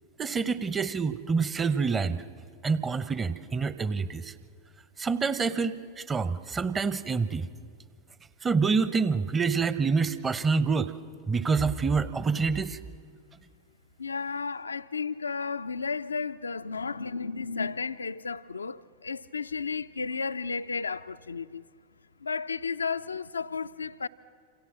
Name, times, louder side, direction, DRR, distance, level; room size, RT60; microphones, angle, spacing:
voice 1, 0.2-2.2 2.6-4.3 5.0-7.5 8.4-10.9 11.3-12.8, right 5 dB, 20° right, 1.0 m, -27 dB
voice 2, 14.0-21.6 22.2-24.1, left 5 dB, 75° left, 0.6 m, -33 dB
28.0 x 27.0 x 7.4 m
figure-of-eight pair, 90°, 0 cm